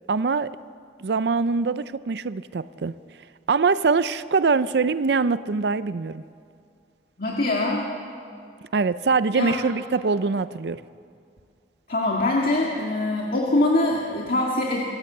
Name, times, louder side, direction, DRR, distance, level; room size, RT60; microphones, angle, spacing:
voice 1, 0.1-0.6 1.0-2.9 3.5-6.2 8.7-10.8, right 4 dB, 70° right, 14 dB, 0.5 m, -23 dB
voice 2, 7.2-7.9 9.3-9.6 11.9-14.8, left 2 dB, 55° left, -2 dB, 2.1 m, -23 dB
25.5 x 15.5 x 7.9 m, 2.3 s
head